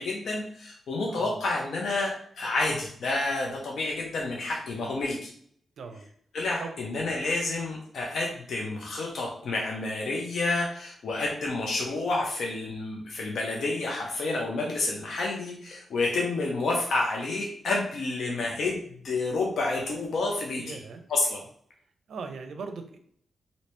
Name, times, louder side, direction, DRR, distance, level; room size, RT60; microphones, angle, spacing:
voice 1, 0.0-5.3 6.3-20.8 21.1-21.4, left 2 dB, 60° left, -1 dB, 0.6 m, -29 dB
voice 2, 5.8-6.1 6.6-6.7 20.6-21.0 22.1-23.0, right 5 dB, 70° right, 6 dB, 0.5 m, -39 dB
2.9 x 2.7 x 3.2 m, 0.62 s
wide cardioid pair, 170°, 0 cm